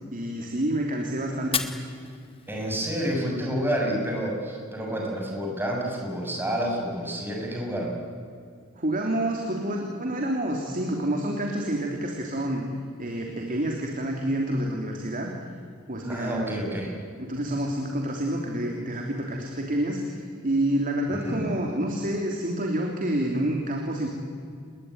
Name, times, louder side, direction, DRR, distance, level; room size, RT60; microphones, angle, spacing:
voice 1, 0.1-1.6 8.8-12.7 13.0-15.3 15.9-16.6 17.2-24.1, right 1 dB, 40° right, 1 dB, 3.2 m, -28 dB
Fire, 1.4-3.4, left 6 dB, 25° left, 1.9 m, -35 dB
voice 2, 2.5-7.9 16.0-16.9 21.1-21.4, equal, 10° right, -1 dB, 6.8 m, -29 dB
29.0 x 21.0 x 9.7 m, 2.3 s
head